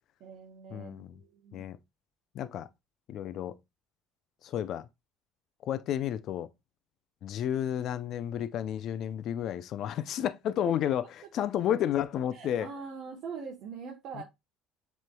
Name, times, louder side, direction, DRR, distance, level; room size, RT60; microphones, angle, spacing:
voice 1, 0.2-1.6 10.7-10.8 12.3-14.2, right 5 dB, 60° right, 1.0 m, -42 dB
voice 2, 0.7-1.2 1.5-1.8 2.3-2.7 3.1-3.6 4.4-4.9 5.6-6.5 7.2-12.7 14.2-14.3, left 10 dB, 55° left, 0.4 m, -31 dB
7.5 x 3.1 x 2.2 m
supercardioid pair, 105°, 0 cm